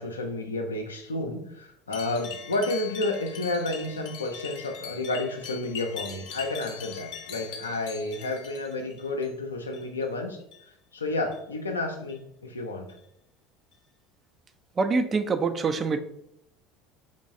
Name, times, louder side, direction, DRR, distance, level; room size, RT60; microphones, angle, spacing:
voice 1, 0.0-10.4 10.9-12.9, left 2 dB, 85° left, 3 dB, 0.5 m, -31 dB
sound 1, 1.9-9.3 9.6-10.1 10.4-10.7 11.3-11.4 12.1-12.2 12.9-13.0 13.7-13.8, left 7 dB, 60° left, 0.8 m, -41 dB
voice 2, 14.8-16.0, right 4 dB, 30° right, 9 dB, 0.4 m, -25 dB
5.1 x 3.1 x 2.6 m, 0.76 s
figure-of-eight pair, 65°, 0 cm